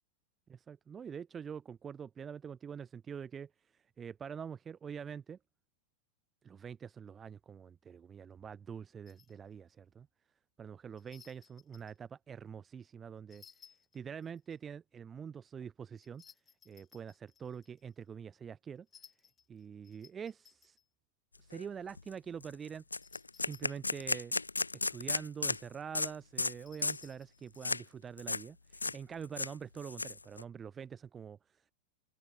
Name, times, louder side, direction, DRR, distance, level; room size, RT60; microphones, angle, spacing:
voice 1, 0.5-5.4 6.4-10.1 10.6-13.4 13.9-16.2 16.7-18.9 19.5-20.8 21.4-22.8 23.3-24.3 24.9-31.7, right 7 dB, 20° right, 0.4 m, -45 dB
sound 1, 9.1-9.4 11.0-12.0 13.3-14.6 16.0-17.9 18.9-20.8 22.9-24.2 26.5-27.8, left 8 dB, 20° left, 2.5 m, -61 dB
sound 2, 21.5-21.6 22.0-22.1 22.4-22.5 22.9-25.6 25.9-26.1 26.4-26.5 26.8-27.1 27.6-27.8 28.2-28.4 28.7-29.0 29.2-30.4, left 3 dB, 80° left, 0.4 m, -34 dB
figure-of-eight pair, 90°, 0 cm